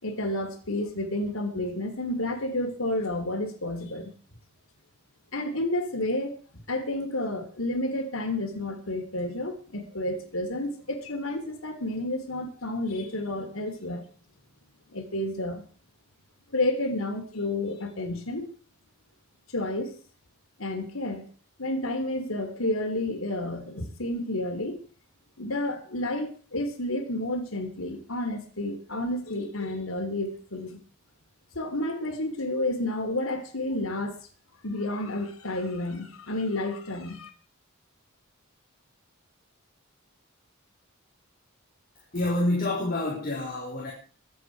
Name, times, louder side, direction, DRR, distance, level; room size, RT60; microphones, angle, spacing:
voice 1, 0.0-4.1 5.3-6.4 6.7-14.0 14.9-15.6 16.5-18.5 19.5-20.0 20.6-21.2 21.6-24.8 25.4-30.8 31.5-34.2 34.6-37.3, left 1 dB, 85° left, 5 dB, 3.3 m, -30 dB
voice 2, 42.1-43.9, left 1 dB, 45° left, -4 dB, 4.4 m, -27 dB
23.5 x 8.6 x 4.8 m, 0.41 s
head